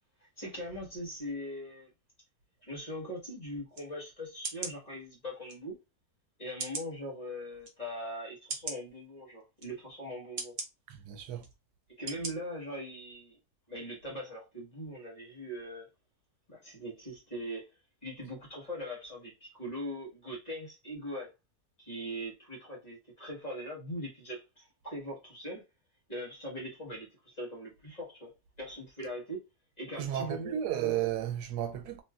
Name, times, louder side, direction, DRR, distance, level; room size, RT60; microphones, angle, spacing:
voice 1, 0.2-1.9 2.6-5.8 6.4-10.5 12.0-13.4 13.7-15.9 16.5-17.7 18.0-21.3 21.8-25.6 26.1-28.3 28.6-29.4 29.8-30.6, equal, 30° left, 1.2 m, -41 dB
sound 1, 3.7-3.9 4.4-4.8 5.5-5.6 6.6-6.9 7.6-7.7 8.5-8.8 9.6-9.7 10.4-10.7 11.4-11.5 12.1-12.3 12.7-12.8, right 3 dB, 45° right, 0.6 m, -38 dB
voice 2, 10.9-11.4 30.0-32.0, right 11 dB, 85° right, 1.2 m, -33 dB
3.1 x 2.9 x 2.2 m
omnidirectional pair, 1.7 m